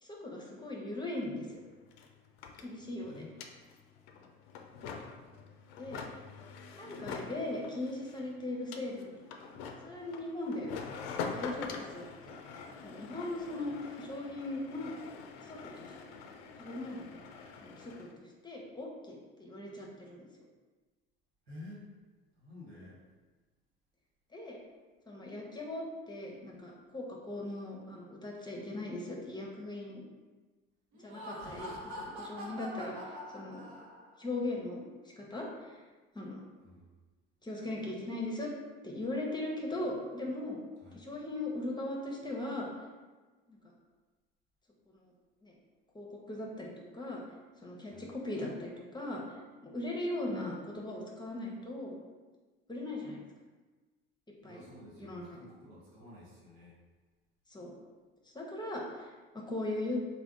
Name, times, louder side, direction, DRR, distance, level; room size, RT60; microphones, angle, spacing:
voice 1, 0.0-1.6 2.6-3.2 4.8-5.0 5.8-6.0 6.8-9.5 9.8-10.7 11.3-12.4 12.8-14.9 15.4-15.9 16.3-17.2 17.6-20.3 24.3-24.6 25.1-30.0 30.9-33.6 34.2-34.8 35.2-35.8 36.1-36.4 37.4-38.5 38.8-40.6 40.9-42.7 43.5-43.6 44.9-45.1 45.4-45.5 45.9-47.2 47.6-49.2 49.6-51.9 52.7-53.2 54.4-54.6 55.0-55.4 57.5-57.7 58.3-60.0, left 2 dB, 15° left, -2 dB, 0.8 m, -39 dB
sound 1, 1.2-1.3 1.5-18.1, left 5 dB, 80° left, 0.5 m, -45 dB
voice 2, 3.0-3.3 21.5-21.8 22.4-23.0 36.6-36.9 40.8-41.0 47.9-48.1 54.4-56.8, left 1 dB, 90° right, -6 dB, 1.2 m, -51 dB
Laughter, 30.9-34.2, equal, 65° right, 0.9 m, -44 dB
3.4 x 2.3 x 3.6 m, 1.3 s
hypercardioid pair, 70°, 30 cm